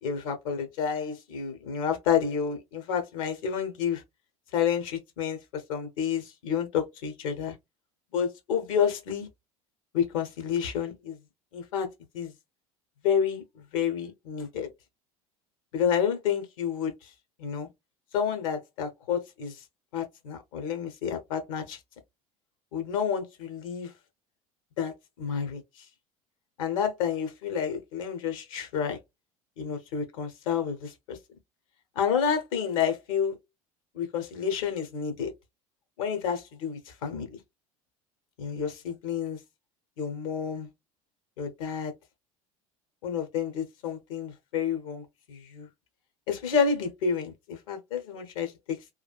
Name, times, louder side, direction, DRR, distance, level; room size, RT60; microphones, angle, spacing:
voice 1, 0.0-4.0 4.5-7.6 8.1-9.3 9.9-11.2 11.5-11.9 12.1-12.3 13.0-14.7 15.7-17.1 17.4-17.7 18.1-19.6 19.9-21.8 22.7-23.9 24.8-25.8 26.6-29.0 29.6-31.2 31.9-33.4 33.9-35.3 36.0-37.4 38.4-39.4 40.0-40.7 41.4-41.9 43.0-45.7 46.3-48.8, left 7 dB, 65° left, 1.0 m, -30 dB
3.2 x 2.4 x 2.3 m
figure-of-eight pair, 70°, 18 cm